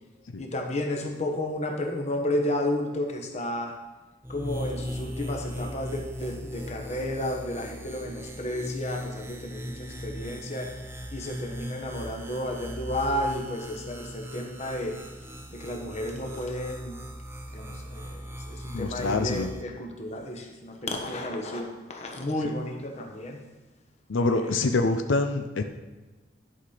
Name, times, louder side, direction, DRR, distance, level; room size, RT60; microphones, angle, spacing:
voice 1, 0.4-3.7 4.3-10.7 11.1-15.0 15.5-17.0 17.5-23.4 24.1-24.6, left 1 dB, 35° left, 2 dB, 1.3 m, -32 dB
sound 1, 4.2-19.6, equal, 15° right, 0.7 m, -38 dB
voice 2, 18.7-19.5 22.4-22.5 24.1-25.6, left 3 dB, 85° left, 7 dB, 0.6 m, -26 dB
11.5 x 5.8 x 5.0 m, 1.2 s
head